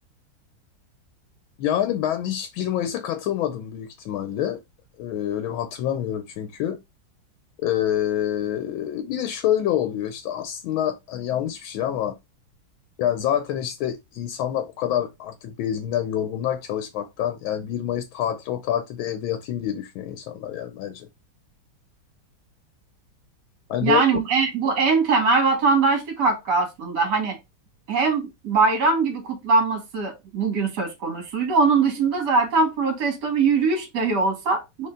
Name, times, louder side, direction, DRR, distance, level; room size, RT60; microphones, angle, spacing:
voice 1, 1.6-4.6 5.0-6.8 7.6-12.2 13.0-21.1 23.7-24.0, left 10 dB, 85° left, 1.4 m, -27 dB
voice 2, 23.8-27.4 27.9-34.9, right 4 dB, 60° right, 1.9 m, -21 dB
4.4 x 3.3 x 3.6 m
omnidirectional pair, 2.2 m